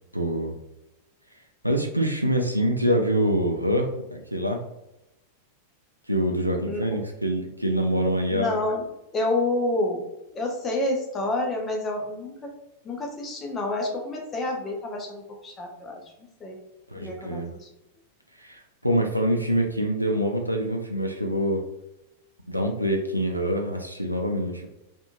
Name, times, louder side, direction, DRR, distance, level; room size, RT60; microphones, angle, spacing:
voice 1, 0.1-0.5 1.6-4.6 6.1-8.5 16.9-17.5 18.4-21.6 22.5-24.7, equal, 90° right, 2 dB, 0.3 m, -25 dB
voice 2, 8.3-8.8 9.1-10.1 10.3-12.5 12.8-16.0 16.4-16.6 17.0-17.7, left 2 dB, 20° left, 1 dB, 0.7 m, -28 dB
2.7 x 2.5 x 2.5 m, 0.90 s
figure-of-eight pair, 90°, 0 cm